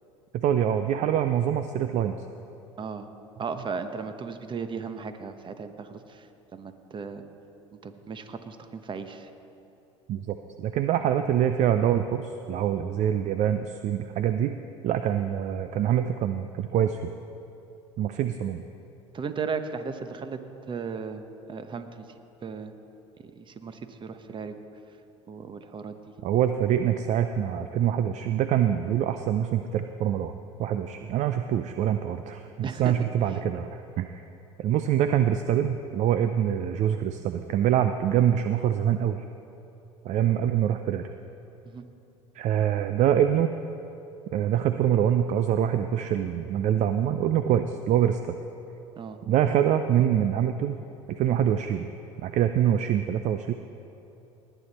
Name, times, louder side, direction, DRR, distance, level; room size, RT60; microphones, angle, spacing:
voice 1, 0.3-2.2 10.1-14.5 14.8-17.1 18.0-18.6 26.2-34.2 34.6-39.2 40.0-41.1 42.3-43.5 44.3-48.4 49.3-50.8 51.1-51.9 52.2-53.5, right 10 dB, 45° right, 9 dB, 0.5 m, -25 dB
voice 2, 3.4-6.3 6.5-7.2 7.8-9.3 19.1-20.4 20.7-21.2 21.5-22.1 22.4-22.7 23.3-24.6 25.3-26.0 32.6-33.4 41.7-41.8 49.0-49.2, right 5 dB, 30° right, 9 dB, 1.0 m, -36 dB
19.0 x 9.1 x 4.2 m, 3.0 s
hypercardioid pair, 80°, 16 cm